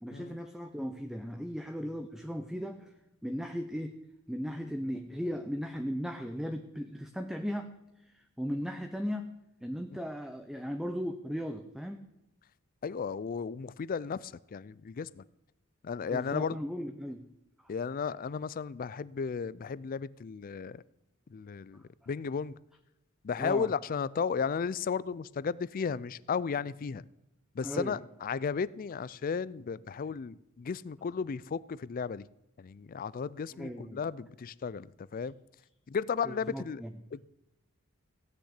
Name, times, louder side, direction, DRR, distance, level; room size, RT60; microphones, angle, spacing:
voice 1, 0.0-2.9 3.2-4.0 4.3-7.8 8.0-9.3 9.6-12.1 16.1-17.3 21.7-21.8 23.4-23.7 27.6-28.0 33.5-34.0 36.2-36.9, equal, ahead, 6 dB, 0.6 m, -37 dB
voice 2, 12.8-15.2 15.8-16.6 17.7-20.8 21.3-22.5 23.2-27.0 27.5-32.3 32.6-35.3 35.9-36.8 37.1-37.3, left 6 dB, 40° left, 20 dB, 0.4 m, -34 dB
16.5 x 6.5 x 8.2 m, 0.90 s
head